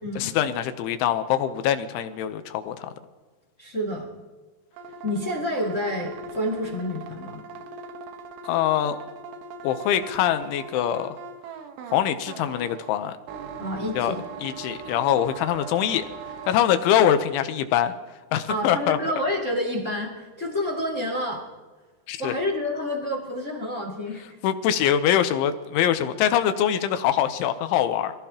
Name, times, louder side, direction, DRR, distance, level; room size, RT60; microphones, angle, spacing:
voice 1, 0.2-2.9 8.4-9.0 9.6-11.2 11.9-13.1 13.9-14.1 14.4-16.1 16.5-17.9 18.3-19.0 22.1-22.3 24.4-28.1, left 10 dB, 80° left, 9 dB, 3.1 m, -23 dB
voice 2, 3.6-4.1 5.0-7.4 13.6-14.2 18.5-21.4 22.2-24.4, left 1 dB, 35° left, -1 dB, 1.1 m, -29 dB
sound 1, 4.7-16.5, right 4 dB, 85° right, 4.0 m, -40 dB
26.5 x 16.5 x 2.9 m, 1.3 s
omnidirectional pair, 5.8 m